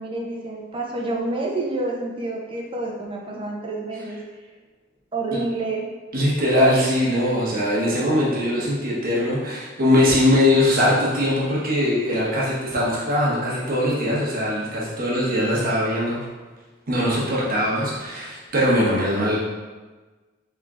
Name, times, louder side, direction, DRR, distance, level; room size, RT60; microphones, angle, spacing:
voice 1, 0.0-4.2 5.1-5.8, right 2 dB, 25° right, -2 dB, 0.7 m, -28 dB
voice 2, 6.1-16.2 16.9-19.4, left 1 dB, 50° right, -6 dB, 1.0 m, -21 dB
3.6 x 3.6 x 3.7 m, 1.3 s
head